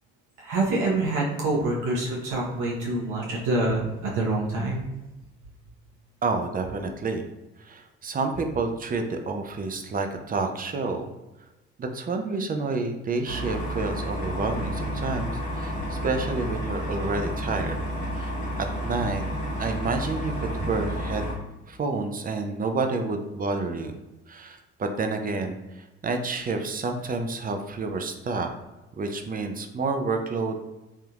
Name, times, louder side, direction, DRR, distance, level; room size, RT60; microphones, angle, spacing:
voice 1, 0.4-4.8, right 2 dB, 70° right, -4 dB, 0.9 m, -26 dB
voice 2, 6.2-7.3 7.6-11.1 11.8-17.8 18.2-18.3 18.6-19.2 19.6-21.2 21.7-23.9 24.3-28.5 29.0-30.6, right 3 dB, 30° right, 5 dB, 0.5 m, -29 dB
sound 1, 13.3-21.3, equal, 85° left, 1.1 m, -31 dB
3.5 x 2.7 x 2.3 m, 1.1 s
hypercardioid pair, 55°, 31 cm